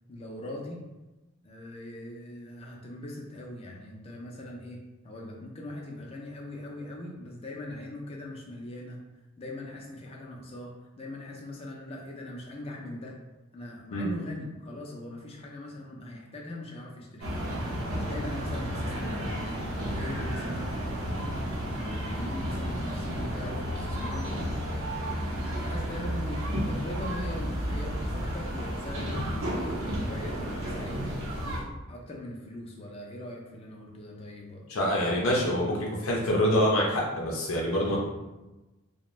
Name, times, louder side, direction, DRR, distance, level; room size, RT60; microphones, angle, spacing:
voice 1, 0.1-0.8 1.4-9.0 9.4-13.2 13.5-17.3 17.9-21.3 21.7-24.3 25.3-29.6 29.8-31.3 31.9-35.3 35.6-35.7, left 1 dB, 30° left, -1 dB, 0.4 m, -41 dB
sound 1, 17.2-31.6, equal, 75° right, 0.7 m, -32 dB
voice 2, 34.7-38.0, equal, 85° left, -3 dB, 0.5 m, -26 dB
2.4 x 2.1 x 3.0 m, 1.1 s
head